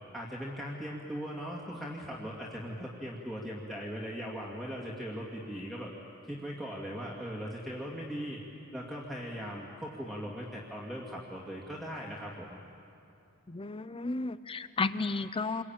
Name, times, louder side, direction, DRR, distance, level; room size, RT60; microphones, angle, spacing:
voice 1, 0.1-5.9 6.2-8.4 8.7-12.6, equal, ahead, -5 dB, 2.4 m, -39 dB
voice 2, 13.5-15.6, left 3 dB, 25° left, 13 dB, 0.6 m, -33 dB
28.0 x 23.0 x 9.0 m, 2.7 s
head